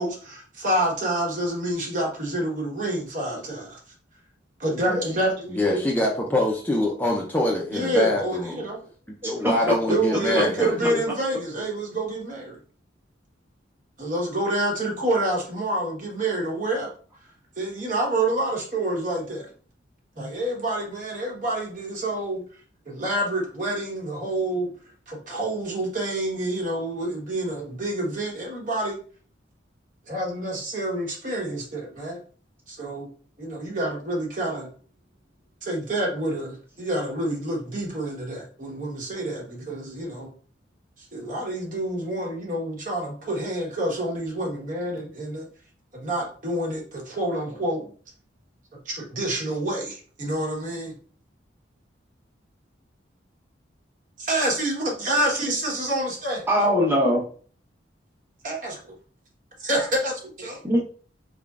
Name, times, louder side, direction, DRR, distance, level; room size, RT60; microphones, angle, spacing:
voice 1, 0.0-3.8 4.6-5.8 7.7-8.8 9.9-12.6 14.0-16.9 17.6-19.5 20.2-22.4 22.9-24.7 25.1-29.0 30.1-32.2 32.7-33.1 33.4-34.7 35.6-40.3 41.1-45.5 45.9-47.9 48.9-50.9 54.2-56.4 58.4-58.8 59.6-60.6, right 1 dB, 45° right, -1 dB, 1.2 m, -27 dB
voice 2, 5.5-8.7 9.2-11.0, left 1 dB, 10° left, -2 dB, 0.5 m, -24 dB
voice 3, 9.2-9.8 56.5-57.2 60.6-60.8, equal, 10° right, -3 dB, 0.9 m, -21 dB
4.1 x 3.6 x 2.4 m, 0.42 s
head